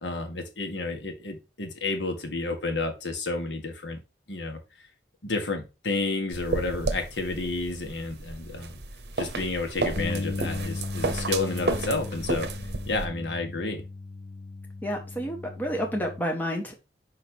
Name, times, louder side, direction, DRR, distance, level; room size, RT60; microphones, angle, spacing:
voice 1, 0.0-4.0 4.3-4.6 5.2-8.8 9.2-12.5 12.9-13.8, left 3 dB, 85° left, 5 dB, 1.7 m, -31 dB
sound 1, 6.3-13.1, right 3 dB, 65° right, 0.9 m, -32 dB
Bass guitar, 10.0-16.2, left 3 dB, 60° left, 0.6 m, -36 dB
voice 2, 14.8-16.7, equal, 10° left, 2 dB, 1.3 m, -30 dB
5.7 x 5.1 x 4.5 m, 0.28 s
head